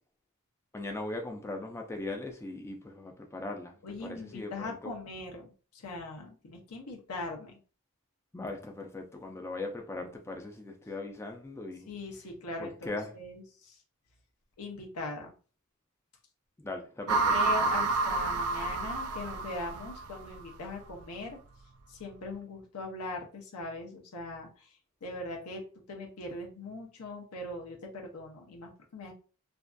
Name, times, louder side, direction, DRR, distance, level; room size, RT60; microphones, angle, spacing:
voice 1, 0.7-4.9 8.3-11.9 12.6-13.1 16.6-17.8, left 2 dB, 10° left, 0.3 m, -39 dB
voice 2, 3.8-7.5 11.9-13.8 14.6-15.3 17.3-21.4 21.9-24.7 25.0-25.6 25.9-29.1, left 2 dB, 85° left, 0.6 m, -40 dB
sound 1, 17.1-20.4, right 3 dB, 75° right, 0.3 m, -29 dB
2.5 x 2.4 x 2.2 m
head